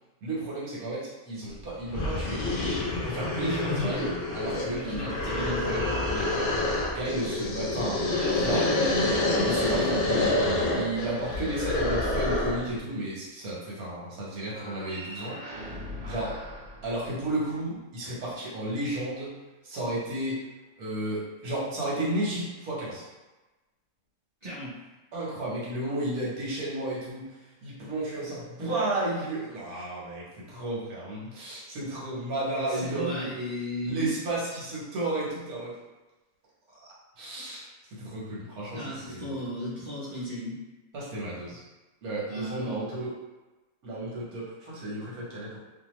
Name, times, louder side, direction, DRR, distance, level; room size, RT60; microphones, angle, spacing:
voice 1, 0.2-2.5 3.0-6.5 6.9-8.0 8.4-8.6 9.4-10.3 10.7-15.4 16.1-16.3 16.8-19.3 19.6-20.4 20.8-23.0 25.1-27.3 27.6-33.3 33.8-35.8 37.2-37.6 37.9-39.4 40.9-41.6 42.0-43.1 43.8-45.6, right 1 dB, 85° right, -6 dB, 1.4 m, -33 dB
sound 1, 1.5-1.6 1.9-12.7, left 2 dB, 70° left, 0.5 m, -27 dB
voice 2, 3.3-4.2 4.6-5.8 8.1-9.3 24.4-24.8 32.7-34.1 38.7-40.6 42.3-42.8, equal, 30° right, -11 dB, 1.0 m, -36 dB
sound 2, 5.3-7.3 8.0-10.4 14.5-17.6, equal, 65° right, 0.4 m, -43 dB
2.8 x 2.3 x 3.0 m, 1.1 s
omnidirectional pair, 1.5 m